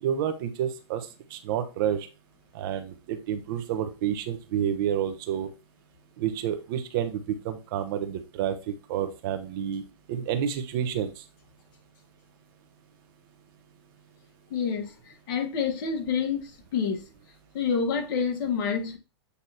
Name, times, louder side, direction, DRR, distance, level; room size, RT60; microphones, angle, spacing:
voice 1, 0.0-2.1 2.5-5.5 6.2-9.8 10.1-11.2, right 9 dB, 50° right, 1.2 m, -29 dB
voice 2, 14.5-14.9 15.3-16.4 16.7-17.0 17.5-19.0, left 6 dB, 50° left, 1.8 m, -27 dB
8.4 x 2.9 x 4.2 m
hypercardioid pair, 135°, 15 cm